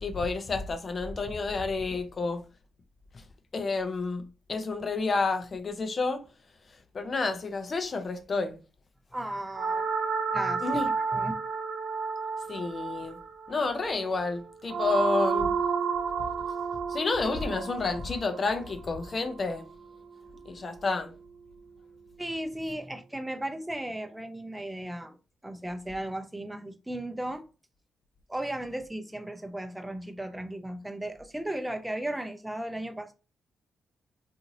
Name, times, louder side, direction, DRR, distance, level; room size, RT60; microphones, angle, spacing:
voice 1, 0.0-2.4 3.5-6.2 6.9-8.6 10.6-10.9 12.5-13.2 13.5-15.6 16.9-19.7 20.5-21.1, left 3 dB, 45° left, 0.6 m, -30 dB
voice 2, 9.1-9.9 10.3-10.6 11.1-11.3 22.2-25.2 25.4-27.4 28.3-33.1, right 1 dB, 10° right, 0.5 m, -35 dB
sound 1, 9.5-19.7, right 5 dB, 65° right, 0.5 m, -31 dB
2.8 x 2.6 x 2.7 m
supercardioid pair, 50°, 0 cm